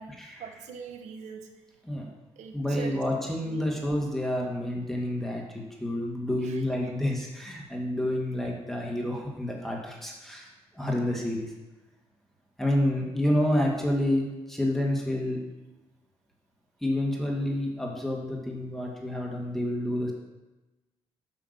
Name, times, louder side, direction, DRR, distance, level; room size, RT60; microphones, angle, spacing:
voice 1, 0.4-1.4 2.4-3.0 3.4-3.7 6.5-6.6, right 6 dB, 80° right, 5 dB, 1.0 m, -42 dB
voice 2, 2.5-10.5 10.7-11.5 12.6-15.4 16.8-20.1, left 1 dB, 5° left, -1 dB, 2.0 m, -29 dB
5.8 x 5.7 x 6.8 m, 1.1 s
supercardioid pair, 55°, 12 cm